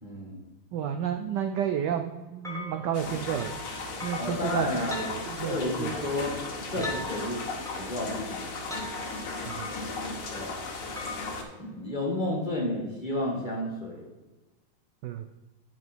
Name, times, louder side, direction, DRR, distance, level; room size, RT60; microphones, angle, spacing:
voice 1, 0.0-0.4 4.1-5.1 5.4-8.7 10.3-10.6 11.6-14.1, left 1 dB, 25° left, -3 dB, 1.8 m, -32 dB
voice 2, 0.7-3.6 4.0-4.7 5.3-5.9 6.8-6.9 9.4-10.0 15.0-15.4, right 9 dB, 80° right, 8 dB, 0.9 m, -31 dB
sound 1, 2.4-11.4, left 1 dB, ahead, 0.8 m, -42 dB
sound 2, 2.9-11.4, left 3 dB, 90° left, 2.2 m, -36 dB
8.9 x 6.0 x 4.4 m, 1.1 s
omnidirectional pair, 2.4 m